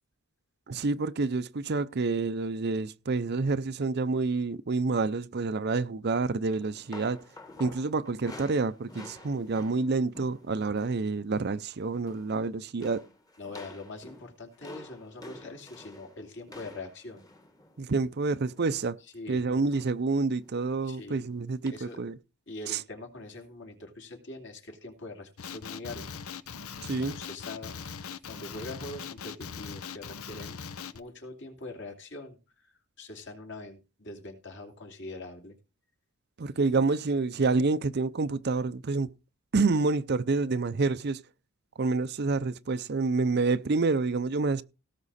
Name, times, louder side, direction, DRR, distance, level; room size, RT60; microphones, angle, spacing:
voice 1, 0.7-7.2 7.6-13.0 17.8-19.0 19.3-22.2 22.7-22.8 26.8-27.2 36.4-39.1 39.5-41.2 41.8-44.6, right 3 dB, 50° right, 0.5 m, -28 dB
sound 1, 6.5-11.1 11.3-11.7 11.9-12.4 12.8-18.8 19.7-20.1 20.4-20.6 21.7-21.8, left 2 dB, 15° left, 1.3 m, -49 dB
voice 2, 13.4-17.2 19.0-19.4 20.8-21.2 21.7-22.0 22.5-26.1 27.1-30.6 30.9-32.7 33.0-35.6, left 2 dB, 55° left, 2.8 m, -43 dB
Male speech man speaking, 25.4-31.0, left 6 dB, 80° left, 0.8 m, -40 dB
18.0 x 6.1 x 4.2 m
head